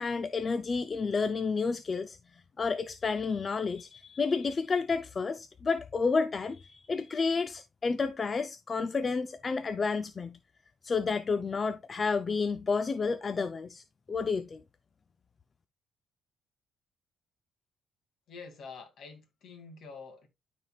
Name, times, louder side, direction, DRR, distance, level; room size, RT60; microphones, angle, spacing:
voice 1, 0.0-2.2 2.6-10.4 10.8-13.8 14.1-14.6, left 4 dB, 35° left, 0.5 m, -30 dB
voice 2, 18.3-20.3, left 4 dB, 65° left, 2.5 m, -47 dB
12.5 x 4.2 x 2.4 m
cardioid pair, 90°, 0 cm